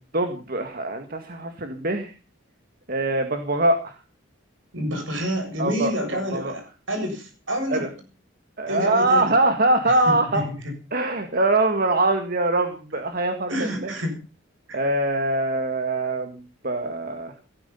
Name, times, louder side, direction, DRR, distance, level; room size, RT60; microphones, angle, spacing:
voice 1, 0.1-2.1 2.9-4.0 5.6-5.9 6.3-6.5 7.7-7.9 8.6-10.5 10.9-13.9 14.7-17.3, right 2 dB, 45° right, 7 dB, 1.9 m, -23 dB
voice 2, 4.7-7.9 8.7-9.3 9.8-10.7 13.5-14.2 14.7-14.8, equal, 65° right, 6 dB, 7.5 m, -28 dB
18.5 x 13.5 x 5.6 m, 0.36 s
head